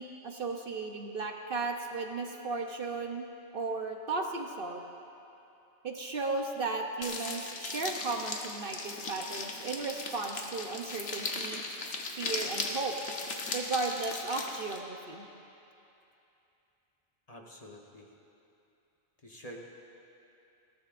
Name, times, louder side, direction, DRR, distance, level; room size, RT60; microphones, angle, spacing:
voice 1, 0.0-3.3 3.5-4.8 5.8-11.6 12.2-12.9 13.5-15.2, right 3 dB, 55° right, 3 dB, 0.9 m, -35 dB
sound 1, 7.0-14.8, left 3 dB, 80° left, 1.4 m, -38 dB
voice 2, 17.3-18.1 19.2-19.6, equal, 35° left, -1 dB, 1.1 m, -48 dB
20.0 x 16.5 x 2.5 m, 2.8 s
omnidirectional pair, 1.2 m